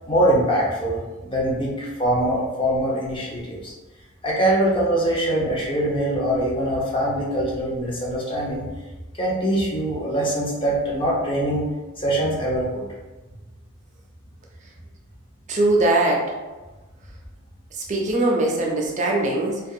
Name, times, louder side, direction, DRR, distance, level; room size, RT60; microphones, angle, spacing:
voice 1, 0.1-1.0 1.3-3.7 4.2-8.7 9.2-11.7 12.0-12.8, right 1 dB, 25° left, -4 dB, 0.6 m, -23 dB
voice 2, 15.5-16.2 17.9-19.6, right 2 dB, 35° right, -1 dB, 0.4 m, -21 dB
2.3 x 2.3 x 2.6 m, 1.2 s
head